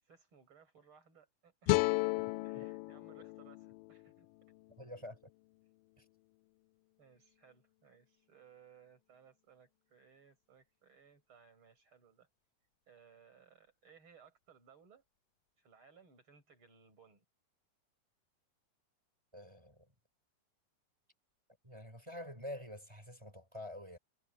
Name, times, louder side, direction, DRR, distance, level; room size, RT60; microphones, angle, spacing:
voice 1, 0.0-1.9 2.4-4.3 7.0-12.3 12.9-15.0 15.6-17.2, right 6 dB, 30° right, 6.9 m, -63 dB
sound 1, 1.7-4.9, left 22 dB, 85° left, 2.0 m, -35 dB
voice 2, 4.8-5.2 6.0-6.1 19.3-19.9 21.6-24.0, left 1 dB, 5° right, 5.1 m, -47 dB
omnidirectional pair, 4.4 m